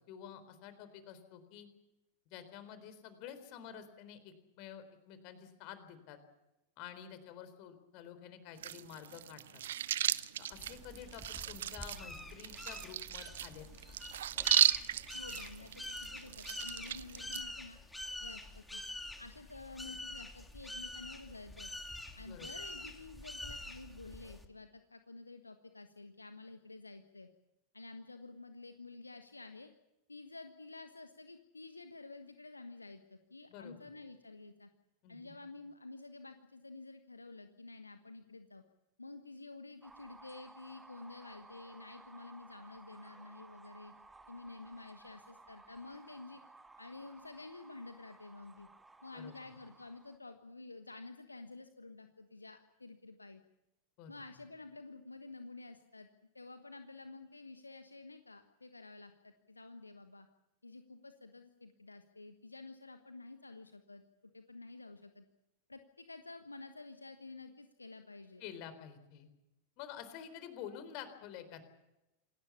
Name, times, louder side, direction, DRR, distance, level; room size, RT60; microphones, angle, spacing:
voice 1, 0.1-1.7 2.3-6.2 6.8-9.6 10.4-13.7 22.2-22.5 33.5-33.8 35.0-35.3 49.1-49.5 54.0-54.1 68.4-69.3 69.8-71.7, left 9 dB, 45° left, 11 dB, 4.0 m, -49 dB
sound 1, 8.6-17.4, right 11 dB, 60° right, 0.7 m, -35 dB
sound 2, 10.5-24.5, left 1 dB, 5° left, 2.6 m, -46 dB
voice 2, 15.1-17.8 18.2-18.8 19.2-21.7 22.2-27.3 27.7-29.7 30.1-34.7 35.1-38.6 39.0-43.9 44.3-46.4 46.8-48.7 49.0-53.4 54.1-56.1 56.3-60.3 60.6-64.0 64.3-65.2 65.7-68.4, left 3 dB, 80° left, 8 dB, 1.3 m, -51 dB
sound 3, 39.8-50.2, right 3 dB, 10° right, 1.6 m, -58 dB
27.5 x 18.5 x 7.1 m, 0.92 s
figure-of-eight pair, 90°, 0 cm